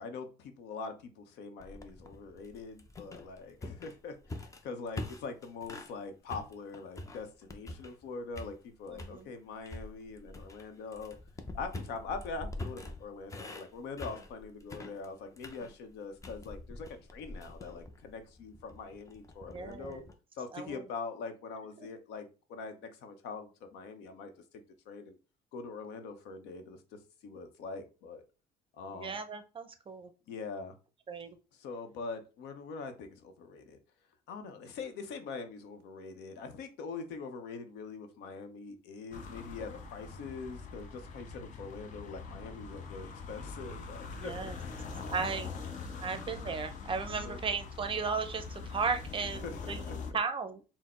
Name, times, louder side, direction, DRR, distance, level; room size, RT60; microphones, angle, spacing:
voice 1, 0.0-11.2 11.5-20.0 20.3-25.2 25.5-28.2 28.8-29.2 30.3-30.8 31.5-33.8 34.3-44.9 46.3-46.4 47.1-47.4 49.4-49.9, left 4 dB, 90° left, 7 dB, 0.8 m, -43 dB
sound 1, 1.6-6.0 6.3-8.1 8.3-9.2 9.7-20.1, left 2 dB, 20° left, 0.6 m, -45 dB
voice 2, 8.9-9.2 19.5-20.0 20.5-20.8 21.8-21.9 28.9-30.1 31.1-31.4 44.1-44.5 45.1-45.5 46.0-50.7, right 5 dB, 30° right, 9 dB, 0.6 m, -36 dB
sound 2, 39.1-50.1, left 4 dB, 50° left, 0.8 m, -43 dB
4.2 x 2.1 x 4.3 m, 0.33 s
cardioid pair, 110°, 17 cm